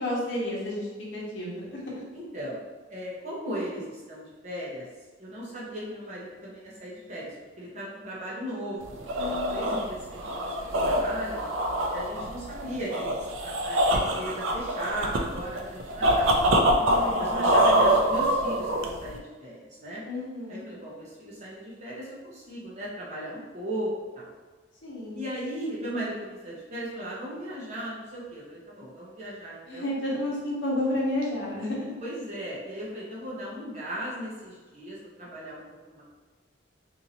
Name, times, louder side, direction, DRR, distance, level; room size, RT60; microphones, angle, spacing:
voice 1, 0.0-2.0 9.2-9.8 16.8-17.9 20.1-20.6 24.8-25.2 29.7-31.9, left 1 dB, 70° left, -5 dB, 0.9 m, -32 dB
voice 2, 2.1-4.9 5.2-11.4 11.9-16.5 17.2-20.0 20.5-24.3 25.1-29.9 32.0-36.0, right 1 dB, 35° right, -6 dB, 0.9 m, -37 dB
sound 1, 8.8-19.2, right 1 dB, 90° right, 0.4 m, -25 dB
2.8 x 2.7 x 2.8 m, 1.3 s
head